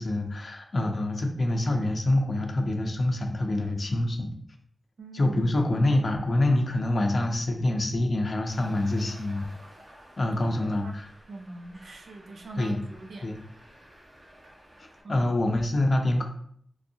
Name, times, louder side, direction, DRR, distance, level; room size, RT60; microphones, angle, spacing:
voice 1, 0.0-4.3 5.1-9.5 10.2-11.1 12.6-12.8 13.2-13.4 14.8-16.2, left 1 dB, 55° left, 3 dB, 0.5 m, -26 dB
voice 2, 5.0-5.4 10.3-10.9 11.3-13.3 15.0-15.3, right 2 dB, 85° right, 3 dB, 0.4 m, -42 dB
Traffic noise roadway noise, 8.4-15.0, equal, 55° right, 1.4 m, -52 dB
3.1 x 2.6 x 2.6 m, 0.62 s
wide cardioid pair, 65°, 0 cm